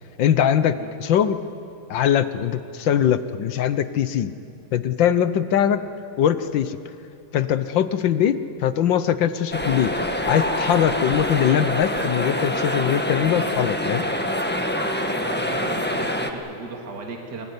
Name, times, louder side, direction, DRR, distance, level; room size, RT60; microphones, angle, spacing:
voice 1, 0.2-1.4 1.9-4.3 4.7-5.8 6.2-6.8 7.3-10.0 10.3-14.0, left 9 dB, 70° left, 12 dB, 1.5 m, -21 dB
sound 1, 9.5-16.3, left 1 dB, 5° left, 1.1 m, -25 dB
voice 2, 15.0-17.5, right 3 dB, 55° right, 1 dB, 2.8 m, -36 dB
23.0 x 21.0 x 9.7 m, 2.8 s
omnidirectional pair, 2.3 m